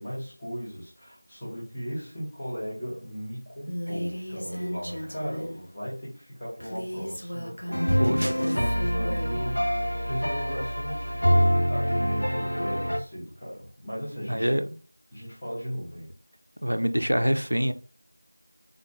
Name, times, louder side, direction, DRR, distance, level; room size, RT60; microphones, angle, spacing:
voice 1, 0.0-14.6 15.1-16.1, equal, 5° left, 0.9 m, -37 dB
Female speech woman speaking, 3.7-5.6 6.6-8.0 8.5-9.4, equal, 55° left, 1.2 m, -35 dB
sound 1, 7.7-13.0, equal, 75° left, 1.0 m, -25 dB
voice 2, 14.3-14.7 16.6-17.7, equal, 85° right, 0.5 m, -25 dB
3.6 x 2.6 x 3.6 m
figure-of-eight pair, 175°, 0 cm